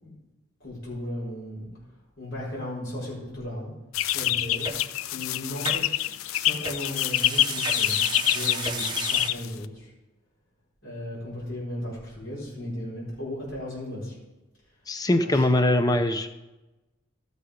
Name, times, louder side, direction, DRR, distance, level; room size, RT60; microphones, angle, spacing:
voice 1, 0.6-1.7 2.2-3.7 4.1-9.9 10.8-14.1 15.2-15.7, left 1 dB, 75° left, -6 dB, 4.5 m, -36 dB
sound 1, 3.9-9.6, left 13 dB, 90° left, 0.4 m, -26 dB
sound 2, 4.6-4.8 5.6-5.8 6.6-9.3, right 5 dB, 20° right, 0.7 m, -34 dB
voice 2, 14.9-16.3, left 1 dB, 20° left, 8 dB, 0.5 m, -22 dB
13.0 x 6.8 x 5.1 m, 1.1 s
head